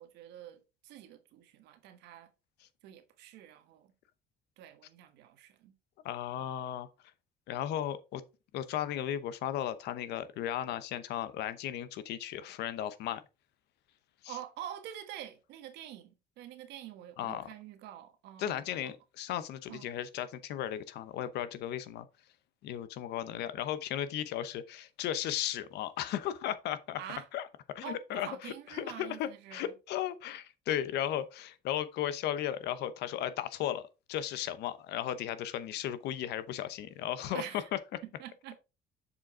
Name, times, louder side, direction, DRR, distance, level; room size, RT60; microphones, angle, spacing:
voice 1, 0.0-2.3 2.8-3.9 4.6-5.7 6.4-6.5 14.3-18.9 19.7-19.9 27.0-27.3 27.8-29.7 37.3-37.7 38.0-38.6, right 11 dB, 85° right, 1.3 m, -46 dB
voice 2, 6.0-6.9 7.5-8.2 8.5-13.2 14.2-14.4 17.2-17.5 18.4-22.1 22.6-27.0 27.3-27.4 27.7-37.5 37.7-37.8, left 11 dB, 80° left, 0.8 m, -35 dB
6.9 x 5.3 x 3.6 m
cardioid pair, 110°, 17 cm